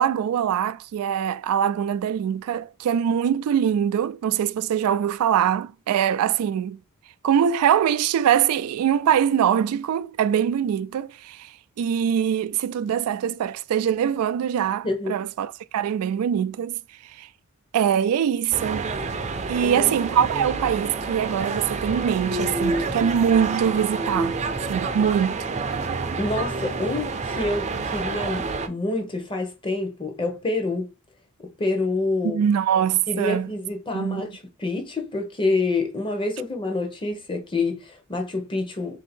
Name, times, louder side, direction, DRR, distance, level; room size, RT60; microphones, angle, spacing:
voice 1, 0.0-6.8 7.2-17.3 17.7-18.9 19.5-24.4 24.7-25.4 32.2-33.5 33.9-34.2, right 8 dB, 85° right, 0.3 m, -23 dB
sound 1, 18.5-28.7, right 3 dB, 35° right, 0.5 m, -28 dB
voice 2, 19.6-19.9 26.2-30.9 31.6-32.4 33.1-39.0, left 2 dB, 25° left, 0.8 m, -27 dB
3.6 x 2.7 x 4.3 m
head